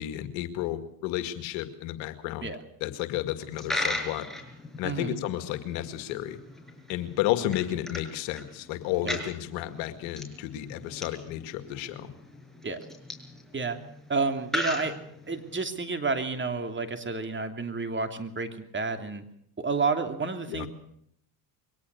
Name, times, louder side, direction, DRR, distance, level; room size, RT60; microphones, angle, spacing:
voice 1, 0.0-2.5 2.8-4.3 4.8-6.4 6.9-12.1 20.5-20.7, left 13 dB, 75° left, 10 dB, 2.1 m, -32 dB
Coin (dropping), 3.4-15.7, left 1 dB, ahead, 5.6 m, -38 dB
voice 2, 4.8-5.2 9.0-9.2 12.6-12.8 13.5-13.8 14.1-15.0 15.3-19.2 19.6-20.7, right 4 dB, 25° right, 7 dB, 2.9 m, -30 dB
22.5 x 18.0 x 6.9 m, 0.69 s
supercardioid pair, 75°, 47 cm